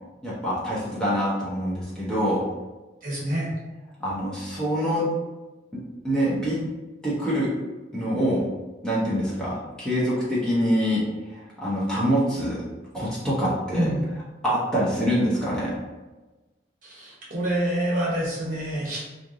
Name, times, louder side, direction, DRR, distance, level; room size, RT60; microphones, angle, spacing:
voice 1, 0.2-2.4 4.0-5.1 6.0-6.6 7.0-7.5 7.9-8.4 8.8-12.6 12.9-13.9 14.4-15.7, equal, 5° left, -8 dB, 0.8 m, -25 dB
voice 2, 3.0-3.5 13.7-14.0 16.8-19.0, right 1 dB, 50° right, -5 dB, 1.1 m, -27 dB
3.1 x 2.6 x 3.7 m, 1.2 s
head